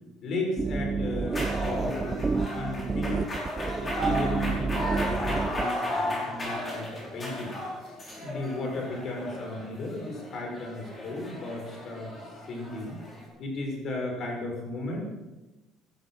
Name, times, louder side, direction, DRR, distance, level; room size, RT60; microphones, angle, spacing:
voice 1, 0.2-3.3 3.8-7.5 7.8-12.1 12.5-13.0 13.4-15.0, left 2 dB, 45° left, 1 dB, 6.2 m, -35 dB
sound 1, 0.6-5.7, right 4 dB, 20° right, 0.4 m, -29 dB
sound 2, 1.3-13.3, left 1 dB, 20° left, 5.3 m, -35 dB
17.5 x 11.5 x 6.6 m, 1.1 s
cardioid pair, 145°, 0 cm